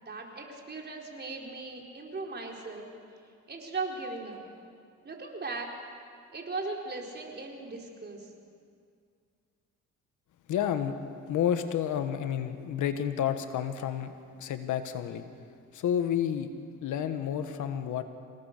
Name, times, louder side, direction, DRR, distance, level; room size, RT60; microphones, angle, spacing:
voice 1, 0.0-2.9 3.5-4.4 5.0-5.7 6.3-8.3, right 3 dB, 35° right, 0 dB, 4.3 m, -38 dB
voice 2, 10.5-11.0 11.3-14.1 14.4-15.2 15.7-16.5 16.8-18.0, left 9 dB, 80° left, 8 dB, 1.5 m, -30 dB
27.5 x 17.5 x 6.7 m, 2.2 s
cardioid pair, 90°, 30 cm